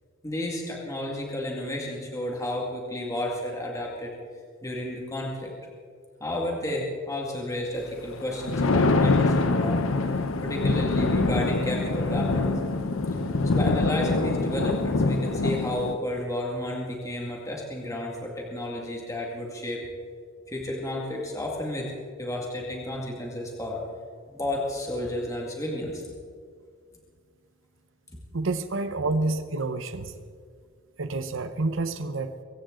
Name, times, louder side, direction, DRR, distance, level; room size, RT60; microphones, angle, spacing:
voice 1, 0.2-4.2 4.6-5.5 6.2-10.2 10.4-12.5 13.1-13.2 13.4-19.9 20.5-21.9 22.2-23.8 24.3-26.0, left 1 dB, 15° left, -1 dB, 2.1 m, -32 dB
Thunder, 8.2-15.9, left 3 dB, 80° left, 0.9 m, -24 dB
voice 2, 28.3-30.2 31.0-32.4, right 3 dB, 70° right, 10 dB, 0.8 m, -28 dB
24.0 x 15.5 x 3.9 m, 2.1 s
head